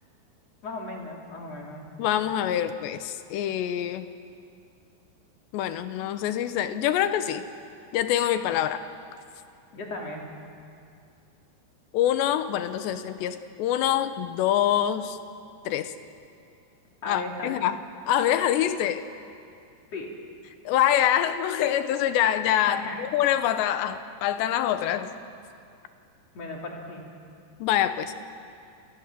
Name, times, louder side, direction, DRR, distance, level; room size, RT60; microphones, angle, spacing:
voice 1, 0.6-1.9 9.7-10.2 17.0-17.6 19.9-20.1 22.7-23.0 26.3-27.1, left 2 dB, 40° left, 0 dB, 4.0 m, -36 dB
voice 2, 2.0-4.1 5.5-7.4 7.9-8.8 11.9-15.2 15.6-15.9 17.0-17.8 18.1-19.0 20.7-25.1 27.6-28.1, left 11 dB, 85° left, 10 dB, 3.3 m, -25 dB
28.5 x 27.5 x 7.6 m, 2.5 s
omnidirectional pair, 4.9 m